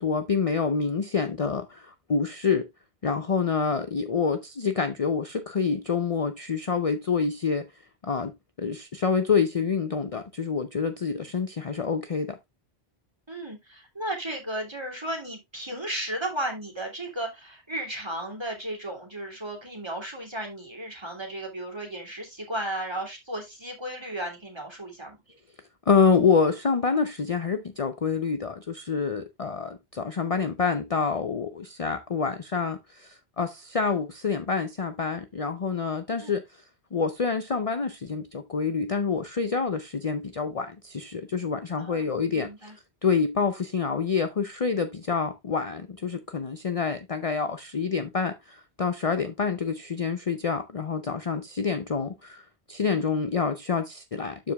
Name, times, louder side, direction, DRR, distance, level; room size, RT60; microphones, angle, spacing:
voice 1, 0.0-2.7 3.0-7.6 8.0-12.4 25.9-36.4 36.9-42.7 43.0-54.5, left 5 dB, 40° left, 0.7 m, -27 dB
voice 2, 13.3-25.2 36.2-36.4 41.8-42.8, right 1 dB, 25° right, 2.8 m, -34 dB
12.5 x 5.0 x 2.3 m
omnidirectional pair, 1.1 m